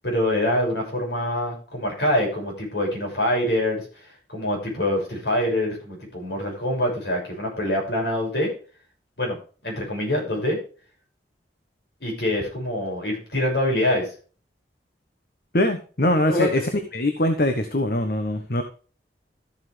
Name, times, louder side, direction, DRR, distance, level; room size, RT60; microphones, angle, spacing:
voice 1, 0.0-3.8 4.3-8.5 9.2-9.4 9.6-10.6 12.0-14.1 16.3-16.6, left 1 dB, 70° left, -1 dB, 6.5 m, -25 dB
voice 2, 15.5-16.6 16.9-18.6, left 1 dB, 55° left, 7 dB, 1.2 m, -22 dB
13.5 x 7.9 x 3.4 m, 0.37 s
head